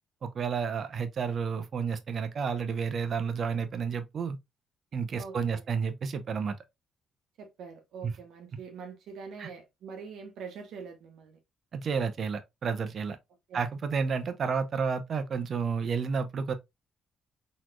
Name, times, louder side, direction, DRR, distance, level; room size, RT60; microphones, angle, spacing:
voice 1, 0.2-4.4 4.9-6.6 8.0-8.1 9.4-9.5 11.7-13.2 13.5-16.5, right 6 dB, 55° right, 0.6 m, -31 dB
voice 2, 5.2-5.6 7.4-11.4 13.5-13.7, right 5 dB, 80° right, 1.1 m, -44 dB
4.1 x 3.0 x 2.5 m
cardioid pair, 90°, 0 cm